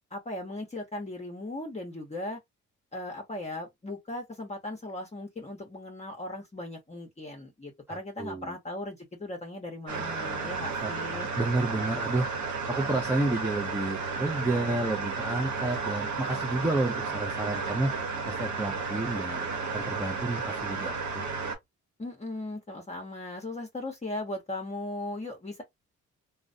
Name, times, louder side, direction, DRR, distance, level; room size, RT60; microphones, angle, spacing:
voice 1, 0.1-2.4 2.9-11.3 22.0-25.6, left 2 dB, 20° left, 0.8 m, -38 dB
voice 2, 7.9-8.6 10.8-12.3 12.7-17.9 18.3-21.3, right 2 dB, 10° right, 0.4 m, -31 dB
sound 1, 9.9-21.5, right 4 dB, 70° right, 0.9 m, -33 dB
2.3 x 2.1 x 2.5 m
cardioid pair, 90°, 30 cm